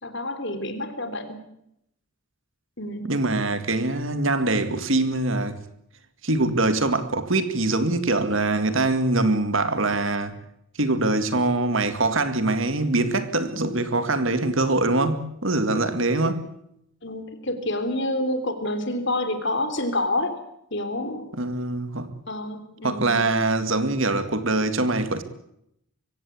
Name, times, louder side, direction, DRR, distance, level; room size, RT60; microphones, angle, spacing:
voice 1, 0.0-1.4 2.8-3.1 17.0-20.4 20.7-21.4 22.3-23.1, left 1 dB, 55° left, 3.4 m, -28 dB
voice 2, 3.0-5.6 6.2-10.4 10.8-16.5 21.4-22.1 22.8-25.2, right 2 dB, 65° right, 2.1 m, -23 dB
24.5 x 16.5 x 8.6 m
head